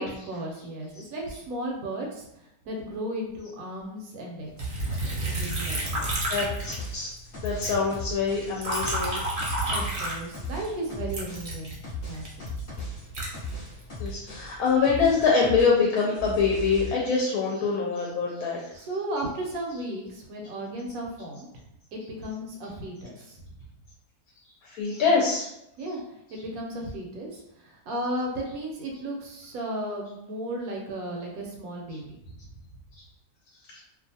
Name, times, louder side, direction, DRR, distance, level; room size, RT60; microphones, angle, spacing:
voice 1, 0.0-4.8 5.0-6.1 9.5-11.8 12.0-12.3 18.7-21.5 21.9-23.4 25.8-26.0 26.3-32.2, right 1 dB, 75° right, 0 dB, 1.0 m, -35 dB
Liquid, 4.6-7.2 7.4-10.6 11.1-14.1 14.7-15.2, right 1 dB, 50° right, 0.7 m, -31 dB
sound 1, 4.9-15.7 16.0-16.9, left 1 dB, 35° left, 0.9 m, -37 dB
voice 2, 6.3-7.1 7.4-9.2 14.0-18.6 24.6-25.5 33.7-33.8, left 5 dB, 75° left, -2 dB, 1.0 m, -24 dB
2.5 x 2.3 x 2.7 m, 0.81 s
omnidirectional pair, 1.6 m